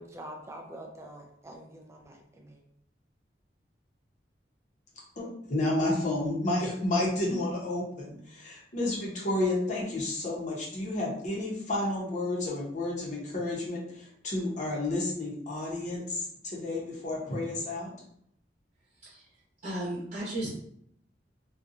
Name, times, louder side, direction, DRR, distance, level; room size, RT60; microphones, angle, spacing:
voice 1, 0.0-2.6, right 1 dB, 15° right, 1 dB, 0.4 m, -45 dB
voice 2, 5.2-17.9, left 2 dB, 45° left, -4 dB, 0.8 m, -31 dB
voice 3, 19.6-20.5, right 1 dB, 35° right, -8 dB, 0.9 m, -34 dB
2.6 x 2.2 x 2.6 m, 0.69 s
head